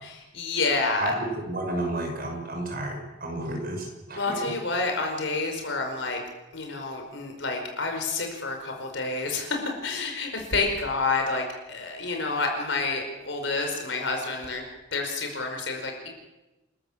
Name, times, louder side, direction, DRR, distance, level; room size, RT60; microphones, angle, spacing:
voice 1, 0.0-1.1 4.1-6.2 6.5-11.4 11.7-14.6 14.9-16.1, left 3 dB, 70° left, 3 dB, 5.0 m, -29 dB
voice 2, 1.5-4.5, right 1 dB, 50° right, 2 dB, 5.9 m, -32 dB
29.0 x 13.0 x 7.4 m, 1.0 s
head